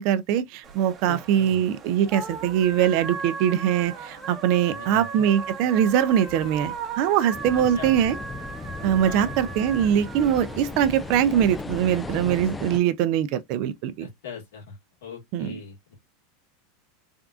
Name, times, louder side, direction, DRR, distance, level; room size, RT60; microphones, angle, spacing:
voice 1, 0.0-8.2 8.8-14.1 15.3-15.6, right 10 dB, 55° right, 0.5 m, -22 dB
sound 1, 0.6-11.2, right 5 dB, 30° right, 0.9 m, -37 dB
voice 2, 1.1-1.6 4.7-5.2 7.6-8.0 9.0-9.4 14.0-14.8 15.0-15.9, left 5 dB, 90° left, 1.7 m, -40 dB
sound 2, 7.3-12.8, left 3 dB, 15° left, 0.3 m, -36 dB
3.5 x 2.4 x 2.4 m
supercardioid pair, 120°, 0 cm